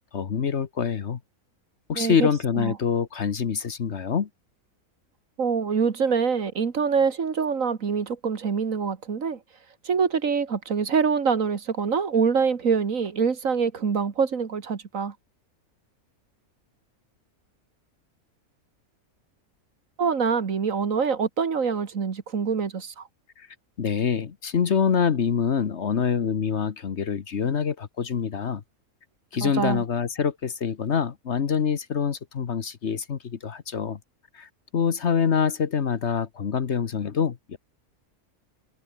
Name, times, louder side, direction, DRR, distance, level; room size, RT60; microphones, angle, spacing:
voice 1, 0.1-1.2 1.9-4.3 23.4-23.5 23.8-28.6 29.3-34.0 34.3-37.6, left 6 dB, 50° left, 1.3 m, -25 dB
voice 2, 2.0-2.3 2.6-2.7 5.4-9.4 9.8-15.1 20.0-23.1 29.4-29.8, right 6 dB, 65° right, 2.0 m, -25 dB
omnidirectional pair, 1.5 m